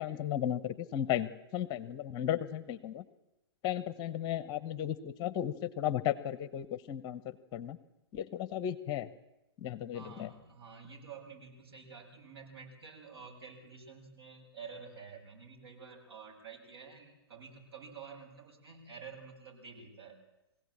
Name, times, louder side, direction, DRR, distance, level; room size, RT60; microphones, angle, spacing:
voice 1, 0.0-3.0 3.6-7.8 8.1-9.1 9.6-10.3, left 11 dB, 30° left, 14 dB, 1.1 m, -35 dB
voice 2, 9.9-20.2, right 5 dB, 65° right, 0 dB, 7.6 m, -50 dB
23.5 x 17.0 x 8.7 m, 0.94 s
hypercardioid pair, 125°, 14 cm